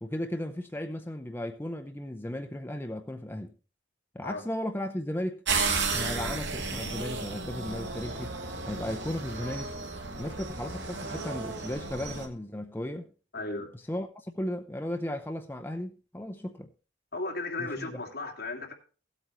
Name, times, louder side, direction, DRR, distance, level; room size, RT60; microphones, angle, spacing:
voice 1, 0.0-3.5 4.1-5.4 5.9-8.4 8.6-9.7 10.2-13.1 13.9-16.7 17.6-18.0, left 1 dB, 10° left, 0.6 m, -35 dB
sound 1, 5.5-12.3, right 4 dB, 75° right, 2.0 m, -33 dB
voice 2, 13.3-13.7 17.1-18.7, left 2 dB, 60° left, 2.5 m, -35 dB
16.5 x 8.3 x 3.1 m
head